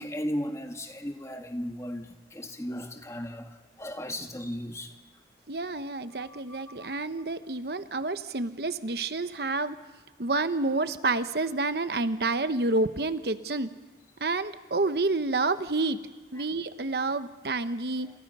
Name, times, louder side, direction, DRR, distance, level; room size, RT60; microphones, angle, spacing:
voice 1, 0.0-4.9 6.1-7.0, equal, 15° left, 1.8 m, -36 dB
voice 2, 5.5-9.8 10.2-13.7 14.2-16.0 16.3-18.1, right 3 dB, 65° right, 1.0 m, -29 dB
28.0 x 28.0 x 5.5 m
head